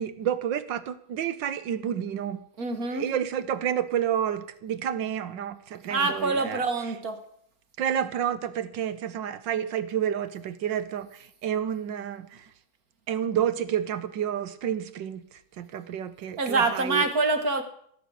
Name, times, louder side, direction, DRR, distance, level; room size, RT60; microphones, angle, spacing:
voice 1, 0.0-2.4 2.9-6.6 7.8-12.4 13.1-15.2 15.6-17.1, right 9 dB, 65° right, 13 dB, 1.4 m, -30 dB
voice 2, 2.6-3.1 5.9-7.2 16.4-17.6, right 3 dB, 45° right, 7 dB, 1.6 m, -25 dB
16.0 x 7.6 x 8.4 m, 0.66 s
omnidirectional pair, 2.4 m